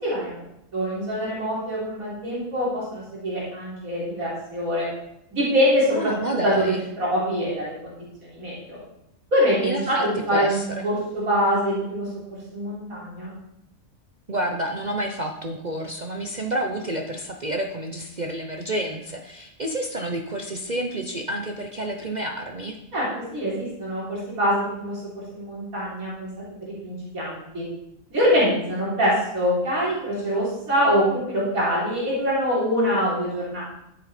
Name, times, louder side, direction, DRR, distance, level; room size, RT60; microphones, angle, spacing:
voice 1, 0.0-0.4 0.7-4.9 5.3-8.0 8.2-8.8 9.3-13.3 22.9-25.0 25.3-26.3 26.8-27.6 28.1-33.6, equal, 85° right, -7 dB, 4.0 m, -24 dB
voice 2, 5.9-6.8 9.6-10.9 14.3-22.8, right 1 dB, 40° right, 3 dB, 0.8 m, -29 dB
13.0 x 7.5 x 4.3 m, 0.82 s
omnidirectional pair, 1.4 m